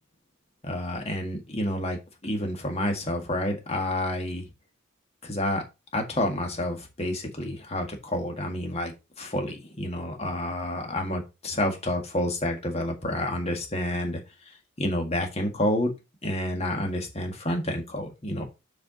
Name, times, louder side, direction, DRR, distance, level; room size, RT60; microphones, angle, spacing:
voice 1, 0.6-4.5 5.2-5.6 5.9-14.2 14.8-15.9 16.2-18.4, left 1 dB, 30° left, 3 dB, 1.7 m, -29 dB
7.7 x 4.9 x 3.9 m, 0.26 s
head